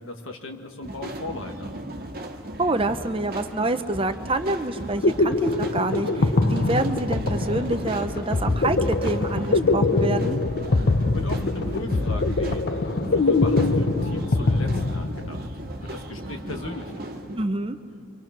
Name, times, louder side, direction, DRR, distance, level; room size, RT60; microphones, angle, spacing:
voice 1, 0.0-1.7 11.1-12.7 13.0-15.5 15.8-17.1, left 2 dB, 65° left, 4 dB, 2.0 m, -37 dB
sound 1, 0.8-17.4, right 1 dB, 40° right, 1.7 m, -36 dB
voice 2, 2.6-10.4 17.4-17.8, right 2 dB, 25° right, 9 dB, 0.6 m, -27 dB
sound 2, 4.7-15.5, left 3 dB, 45° left, 0.7 m, -23 dB
27.0 x 25.5 x 6.0 m, 2.7 s
head